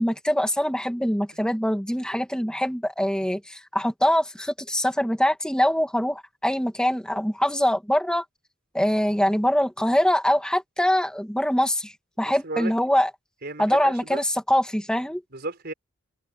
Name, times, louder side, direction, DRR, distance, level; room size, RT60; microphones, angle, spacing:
voice 1, 0.0-8.2 8.7-13.1 13.6-15.2, equal, 5° left, 2.1 m, -23 dB
voice 2, 13.4-14.2 15.3-15.7, right 2 dB, 50° right, 5.1 m, -33 dB
head